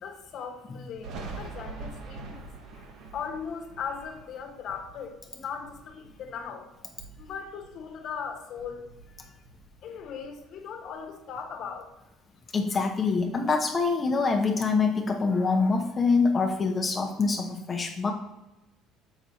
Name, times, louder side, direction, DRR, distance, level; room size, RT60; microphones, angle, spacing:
voice 1, 0.0-2.4 2.7-2.9 3.1-6.7 7.2-9.4 9.8-11.9, left 6 dB, 55° left, 4 dB, 1.3 m, -38 dB
Thunder, 1.0-6.5 6.8-8.3 8.6-10.3, right 3 dB, 65° right, 1.2 m, -44 dB
voice 2, 12.5-18.1, left 4 dB, 30° left, 3 dB, 0.9 m, -25 dB
6.1 x 6.0 x 4.1 m, 0.98 s
supercardioid pair, 100°, 0 cm